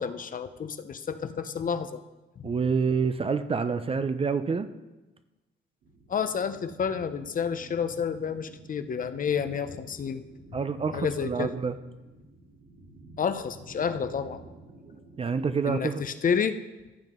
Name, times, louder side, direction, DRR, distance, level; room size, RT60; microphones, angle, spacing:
voice 1, 0.0-2.0 2.4-2.5 6.1-10.3 10.9-11.5 13.2-14.4 15.6-16.6, left 7 dB, 45° left, 10 dB, 0.7 m, -30 dB
voice 2, 2.4-4.7 10.5-11.7 15.2-16.0, right 5 dB, 30° right, 11 dB, 0.6 m, -27 dB
sound 1, 5.8-15.8, right 2 dB, 70° right, 2.7 m, -50 dB
15.0 x 7.5 x 3.7 m, 1.1 s
cardioid pair, 90°, 20 cm